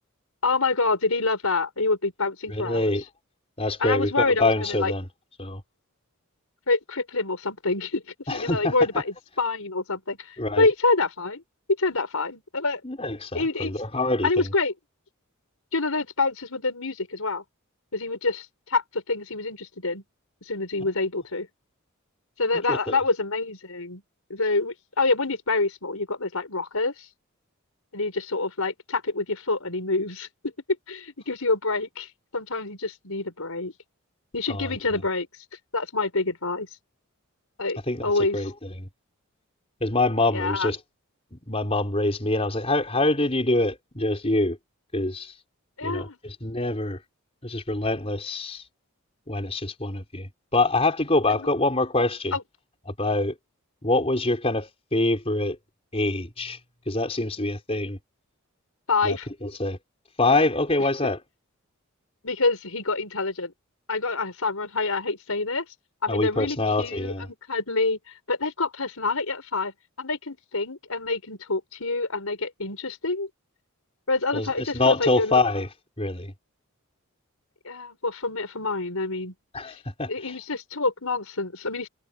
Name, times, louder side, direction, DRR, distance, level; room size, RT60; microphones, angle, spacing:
voice 1, 0.4-2.9 3.8-4.9 6.7-11.4 11.8-12.8 13.3-13.7 14.2-14.7 15.7-17.4 17.9-20.0 20.4-21.5 22.4-24.0 24.3-27.1 27.9-30.3 30.9-33.7 34.3-35.3 35.7-36.7 37.6-38.4 40.3-40.7 45.8-46.2 51.3-51.5 52.3-52.4 58.9-59.3 62.2-63.5 63.9-65.6 66.0-68.0 68.3-69.7 70.0-73.3 74.1-75.4 77.6-79.3 79.7-79.8 80.1-81.9, left 3 dB, 75° left, 5.0 m, -27 dB
voice 2, 2.5-3.0 3.6-5.0 5.4-5.6 8.3-8.7 10.4-10.7 12.8-14.5 22.5-23.0 34.5-34.8 37.9-38.5 38.8-38.9 39.8-40.8 41.3-44.6 44.9-45.3 45.8-47.0 47.4-48.6 49.3-52.4 53.0-53.3 53.8-55.6 55.9-56.6 56.9-58.0 59.0-59.8 60.2-61.2 66.1-67.3 74.3-75.7 76.0-76.3 79.5-80.1, left 2 dB, 25° left, 4.7 m, -25 dB
head